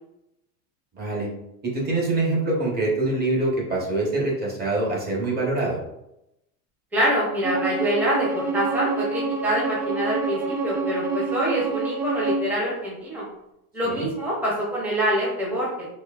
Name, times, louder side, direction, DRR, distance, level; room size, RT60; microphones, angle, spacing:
voice 1, 0.9-1.3 1.6-5.8 13.8-14.1, right 2 dB, 20° right, -3 dB, 1.2 m, -24 dB
voice 2, 6.9-13.3 13.7-15.9, equal, 5° right, -6 dB, 0.9 m, -25 dB
Bowed string instrument, 7.4-12.5, right 4 dB, 40° right, 0.7 m, -27 dB
4.3 x 2.8 x 2.4 m, 0.85 s
supercardioid pair, 140°, 43 cm